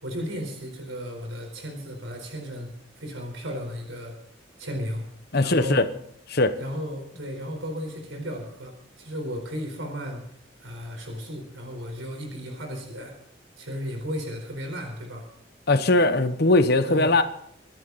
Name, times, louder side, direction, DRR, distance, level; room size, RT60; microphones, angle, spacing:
voice 1, 0.0-2.7 3.0-4.2 4.6-5.1 5.4-5.9 6.6-10.2 10.6-13.2 13.6-15.3 16.9-17.1, equal, 85° right, 4.4 m, -34 dB
voice 2, 5.3-5.8 6.3-6.5 15.7-17.2, left 2 dB, 55° left, 1.1 m, -20 dB
25.0 x 10.5 x 4.1 m
head